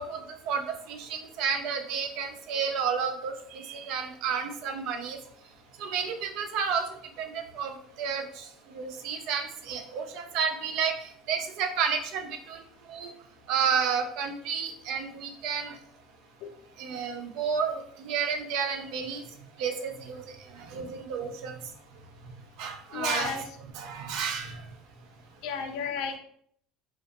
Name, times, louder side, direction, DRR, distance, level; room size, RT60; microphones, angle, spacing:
voice 1, 0.0-5.2 5.8-6.8 7.2-7.7 8.0-8.4 8.7-10.9 11.3-12.6 12.9-13.1 13.5-15.7 16.8-19.2 19.6-20.2 20.6-21.5 22.6-23.4 23.8-24.6, right 6 dB, 55° right, 5 dB, 0.4 m, -31 dB
voice 2, 22.9-23.4 25.4-26.2, left 6 dB, 60° left, 4 dB, 0.4 m, -32 dB
2.5 x 2.2 x 2.5 m, 0.64 s
cardioid pair, 165°, 0 cm